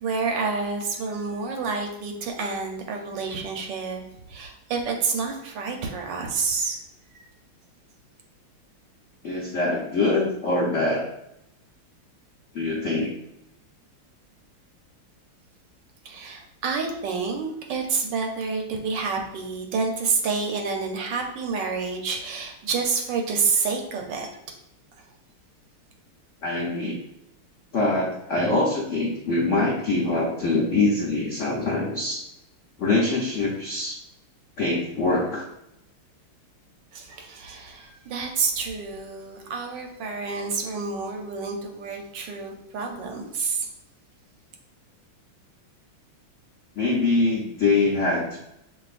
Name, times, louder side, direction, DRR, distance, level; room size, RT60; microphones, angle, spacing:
voice 1, 0.0-4.0 4.3-6.8 16.0-24.3 36.9-43.7, right 4 dB, 65° right, 2 dB, 1.2 m, -28 dB
voice 2, 9.2-11.1 12.5-13.2 26.4-27.0 27.7-32.2 32.8-34.0 34.6-35.4 46.8-48.4, left 2 dB, 85° left, -4 dB, 0.6 m, -24 dB
7.6 x 2.6 x 2.4 m, 0.83 s
omnidirectional pair, 2.4 m